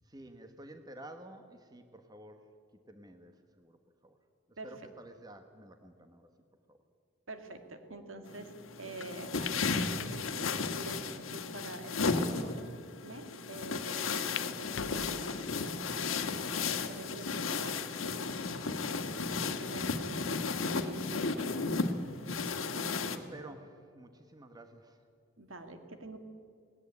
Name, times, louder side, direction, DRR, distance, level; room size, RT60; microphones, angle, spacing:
voice 1, 0.1-2.4 2.9-3.3 3.6-3.8 4.0-4.1 4.6-6.3 6.7-6.8 23.0-25.0, right 1 dB, 20° right, 7 dB, 1.2 m, -51 dB
voice 2, 4.6-4.9 7.3-8.5 8.8-12.5 13.0-16.2 16.7-18.8 19.6-20.4 20.7-21.5 25.4-26.2, right 2 dB, 80° right, 6 dB, 2.2 m, -46 dB
sound 1, 8.3-23.2, left 4 dB, 90° left, 1.4 m, -34 dB
sound 2, 9.0-9.1 9.5-9.6 10.0-10.9 11.5-11.6 12.4-12.5 12.7-12.8 14.1-14.5 14.7-15.5 16.1-16.5 17.0-17.1 18.3-18.7, left 7 dB, 70° left, 0.6 m, -43 dB
19.0 x 17.5 x 9.7 m, 2.3 s
head